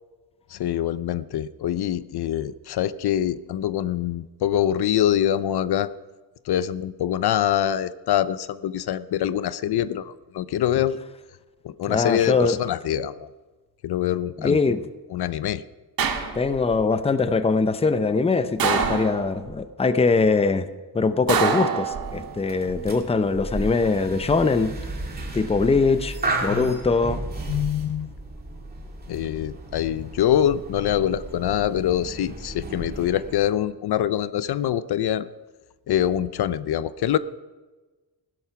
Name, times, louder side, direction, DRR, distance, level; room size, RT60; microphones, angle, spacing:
voice 1, 0.5-5.9 6.5-11.0 11.6-13.3 13.8-14.6 15.1-15.6 26.5-26.7 27.5-28.1 29.1-35.3 35.9-37.2, left 11 dB, 70° left, 0.6 m, -24 dB
voice 2, 11.9-12.6 14.4-14.8 16.3-20.7 20.9-24.7 25.3-27.2, left 4 dB, 15° left, 0.6 m, -22 dB
sound 1, 16.0-16.8 18.6-19.5 21.3-22.4 23.8-24.4, right 6 dB, 60° right, 1.8 m, -25 dB
sound 2, 22.0-33.4, right 2 dB, 25° right, 2.6 m, -34 dB
16.0 x 12.5 x 5.9 m
wide cardioid pair, 140°, 41 cm